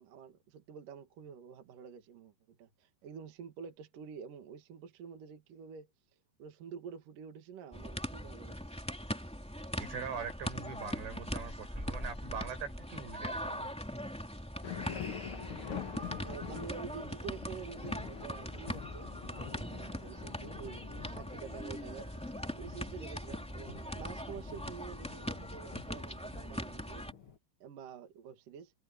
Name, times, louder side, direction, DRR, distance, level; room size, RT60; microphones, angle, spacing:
voice 1, 0.0-5.9 6.4-8.6 16.2-22.1 22.5-27.1 27.6-28.7, right 7 dB, 55° right, 3.2 m, -48 dB
sound 1, 7.7-27.1, equal, ahead, 2.1 m, -41 dB
voice 2, 9.8-13.8, right 6 dB, 85° right, 9.7 m, -42 dB
sound 2, 14.6-27.4, left 8 dB, 85° left, 1.1 m, -47 dB
omnidirectional pair, 5.0 m